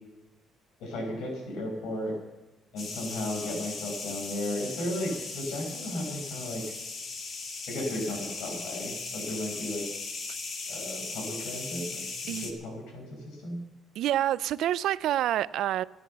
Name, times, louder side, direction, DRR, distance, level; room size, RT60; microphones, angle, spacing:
voice 1, 0.8-2.1 2.7-6.6 7.7-9.8 10.7-13.6, left 1 dB, 85° left, 5.9 m, -35 dB
sound 1, 2.8-12.5, left 4 dB, 40° left, 2.0 m, -38 dB
voice 2, 14.0-15.8, right 12 dB, 70° right, 0.4 m, -27 dB
14.5 x 10.5 x 6.9 m
cardioid pair, 160°, 0 cm